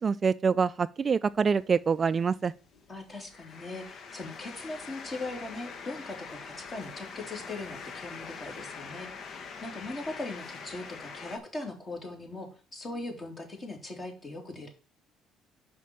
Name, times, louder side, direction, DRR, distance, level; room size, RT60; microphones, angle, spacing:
voice 1, 0.0-2.5, right 5 dB, 40° right, 0.3 m, -25 dB
sound 1, 1.3-11.4, left 5 dB, 55° left, 1.1 m, -44 dB
voice 2, 2.9-9.3 9.6-14.7, left 2 dB, 35° left, 3.0 m, -40 dB
5.6 x 5.2 x 6.2 m
supercardioid pair, 80°, 0 cm